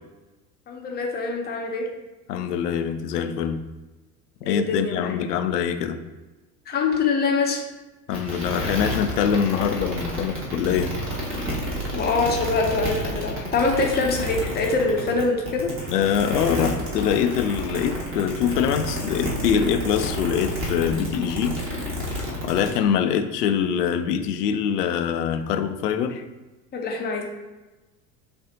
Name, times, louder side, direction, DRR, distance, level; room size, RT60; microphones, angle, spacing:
voice 1, 0.7-1.9 4.5-5.2 6.7-7.6 11.9-15.7 26.7-27.2, left 3 dB, 20° left, 1 dB, 0.7 m, -24 dB
voice 2, 2.3-3.6 4.5-6.0 8.1-10.9 15.9-21.6 22.4-26.2, left 8 dB, 70° left, 8 dB, 0.6 m, -24 dB
sound 1, 8.1-22.8, equal, 25° right, 1.2 m, -30 dB
6.6 x 2.5 x 2.7 m, 1.1 s
figure-of-eight pair, 75°, 50 cm